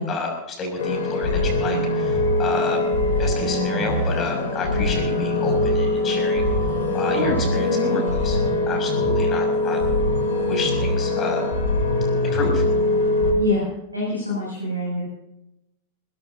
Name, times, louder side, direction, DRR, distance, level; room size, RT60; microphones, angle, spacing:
voice 1, 0.0-2.8 3.2-6.4 6.9-8.4 8.7-9.8 10.5-11.4 12.2-12.6, left 3 dB, 25° left, 3 dB, 6.4 m, -30 dB
sound 1, 0.8-13.3, left 2 dB, 60° left, 4.3 m, -22 dB
voice 2, 7.1-8.2 13.4-15.0, left 1 dB, 90° right, -6 dB, 7.0 m, -26 dB
22.0 x 20.0 x 2.7 m, 0.89 s
figure-of-eight pair, 90°, 0 cm